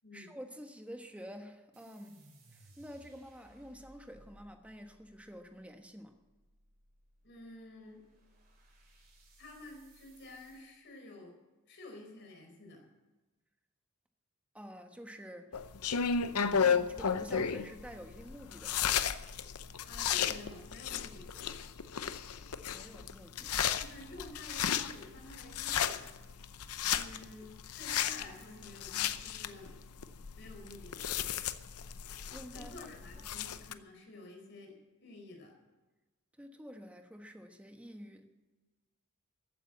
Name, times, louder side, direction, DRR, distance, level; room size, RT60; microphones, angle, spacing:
voice 1, 0.1-6.2 14.5-15.5 16.6-19.0 22.7-23.7 32.3-32.7 36.4-38.3, equal, 5° right, 5 dB, 1.3 m, -49 dB
sound 1, 1.7-10.6, right 1 dB, 45° right, 4.6 m, -63 dB
voice 2, 7.2-8.0 9.4-11.3 11.7-12.9 19.8-21.3 23.8-26.1 26.9-29.7 30.3-31.1 32.5-34.7 35.0-35.5, left 2 dB, 55° left, 1 dB, 4.5 m, -51 dB
sound 2, 15.5-33.7, left 7 dB, 90° left, 0.7 m, -34 dB
14.5 x 9.2 x 7.6 m, 1.2 s
head